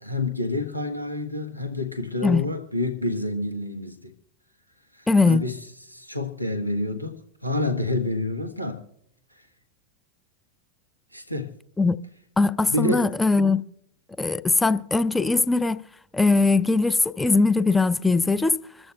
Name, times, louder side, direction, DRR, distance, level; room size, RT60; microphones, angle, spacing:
voice 1, 0.0-4.1 4.9-5.6 5.9-8.8 11.1-11.5 12.7-13.1, left 2 dB, 90° left, 1.1 m, -28 dB
voice 2, 5.1-5.4 11.8-12.0 12.4-13.6 14.2-15.8 16.1-18.6, left 3 dB, 10° left, 0.4 m, -20 dB
26.0 x 14.0 x 2.3 m
figure-of-eight pair, 90°, 0 cm